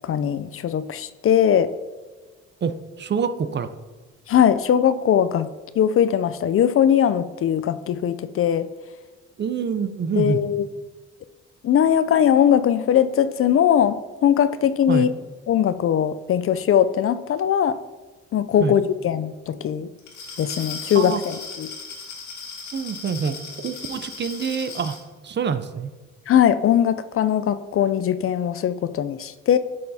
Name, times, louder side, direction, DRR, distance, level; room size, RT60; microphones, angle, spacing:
voice 1, 0.0-1.7 4.3-5.5 5.8-8.7 10.2-10.7 11.6-14.0 14.2-15.1 15.5-17.8 18.3-19.9 20.4-21.7 26.3-29.6, left 9 dB, 45° left, 13 dB, 0.4 m, -20 dB
voice 2, 2.6-3.7 9.4-10.4 14.9-15.1 18.6-18.8 20.9-21.2 22.7-25.0 25.2-25.9, right 6 dB, 35° right, 11 dB, 0.5 m, -26 dB
Glass, 20.0-25.0, left 4 dB, 70° left, 1.9 m, -37 dB
9.5 x 6.6 x 2.7 m, 1.3 s
cardioid pair, 90°, 30 cm